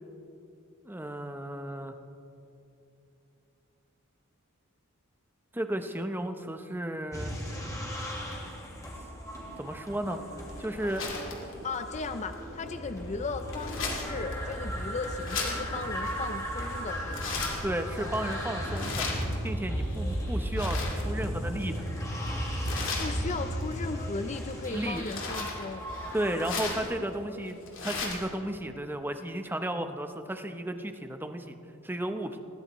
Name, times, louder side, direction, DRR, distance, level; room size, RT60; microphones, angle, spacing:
voice 1, 0.8-2.0 5.5-7.3 9.6-10.2 10.6-11.1 17.6-19.1 19.4-21.8 24.6-25.0 26.1-31.6 31.8-32.4, right 1 dB, 10° right, 7 dB, 0.7 m, -33 dB
sound 1, 7.1-26.6, equal, 15° left, 2.3 m, -35 dB
sound 2, 10.3-28.3, left 3 dB, 65° left, 2.4 m, -39 dB
voice 2, 11.6-17.4 23.0-25.9, left 3 dB, 35° left, 8 dB, 0.5 m, -36 dB
21.0 x 15.5 x 3.0 m, 2.8 s
head